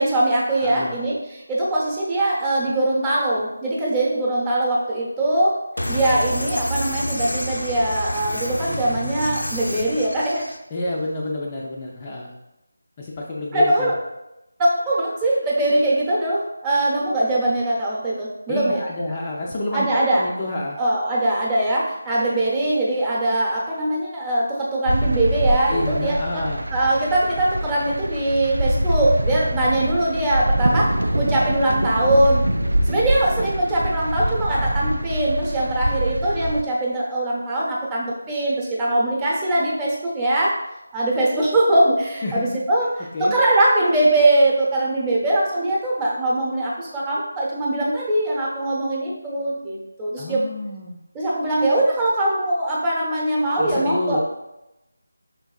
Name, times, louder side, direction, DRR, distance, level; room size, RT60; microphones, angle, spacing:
voice 1, 0.0-5.6 5.9-10.4 13.5-14.0 14.6-18.8 19.7-20.3 20.8-26.4 26.7-32.4 32.8-40.6 40.9-42.9 43.2-50.4 51.1-54.2, right 1 dB, 15° right, -5 dB, 0.8 m, -21 dB
voice 2, 0.6-1.0 10.7-12.3 13.0-13.9 18.5-19.9 20.2-20.8 25.7-26.7 42.2-42.4 43.1-43.3 50.2-51.0 53.6-54.2, left 2 dB, 25° left, -3 dB, 0.4 m, -28 dB
sound 1, 5.8-10.6, left 1 dB, 85° left, 0.5 m, -28 dB
sound 2, 24.9-36.6, right 1 dB, 85° right, 0.4 m, -24 dB
5.6 x 3.5 x 2.4 m, 0.92 s
figure-of-eight pair, 165°, 0 cm